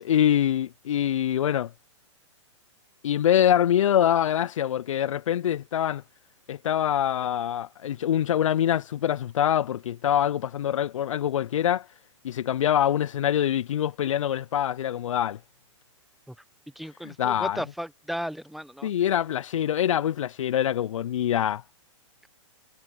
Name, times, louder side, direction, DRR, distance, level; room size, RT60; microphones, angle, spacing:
voice 1, 0.0-1.7 3.0-6.0 6.5-11.9 12.2-15.4 17.0-17.6 18.8-21.6, left 10 dB, 80° left, 0.4 m, -24 dB
voice 2, 16.8-18.9, equal, ahead, 0.8 m, -35 dB
hypercardioid pair, 130°, 16 cm